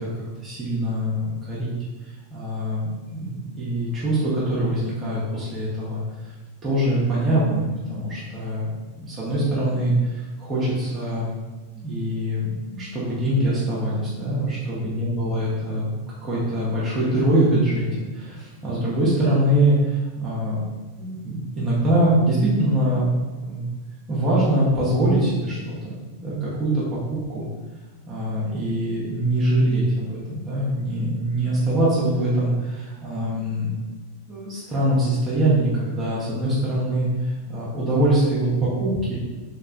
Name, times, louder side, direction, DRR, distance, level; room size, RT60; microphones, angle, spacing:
voice 1, 0.0-1.7 2.3-6.0 6.6-11.3 11.8-15.9 16.2-20.6 21.0-23.1 23.3-23.7 24.1-26.8 27.1-27.5 28.1-33.7 34.3-39.2, right 1 dB, 25° right, -8 dB, 0.8 m, -23 dB
3.2 x 3.0 x 2.5 m, 1.2 s
figure-of-eight pair, 90°, 0 cm